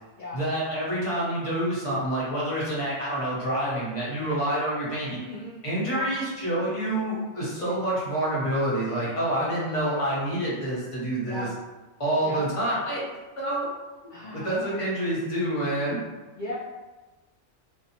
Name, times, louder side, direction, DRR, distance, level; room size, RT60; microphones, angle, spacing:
voice 1, 0.3-5.2 5.6-11.5 12.0-13.0 13.4-13.6 14.3-16.0, right 1 dB, 30° left, -8 dB, 0.8 m, -27 dB
voice 2, 5.2-5.6 5.9-6.0 7.6-7.7 8.8-9.2 9.6-10.2 11.2-11.5 12.2-12.4 14.1-14.8 16.4-16.5, left 1 dB, 75° left, -6 dB, 0.4 m, -38 dB
2.6 x 2.0 x 2.8 m, 1.2 s
omnidirectional pair, 1.4 m